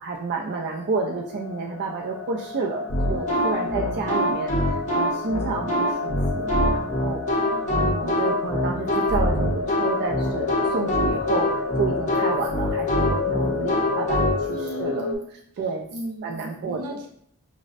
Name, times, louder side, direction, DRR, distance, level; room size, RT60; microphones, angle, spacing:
voice 1, 0.0-7.2 7.7-11.5 11.8-15.1 15.6-15.9 16.2-17.0, right 4 dB, 45° right, 0 dB, 0.3 m, -30 dB
sound 1, 0.7-15.2, left 5 dB, 80° left, 0.5 m, -31 dB
sound 2, 2.9-14.3, equal, 35° left, 0.6 m, -24 dB
voice 2, 3.0-3.9 7.4-7.8 14.5-15.3 15.5-15.7 15.9-17.1, equal, 80° right, 1 dB, 0.7 m, -37 dB
5.0 x 2.0 x 2.4 m, 0.67 s
head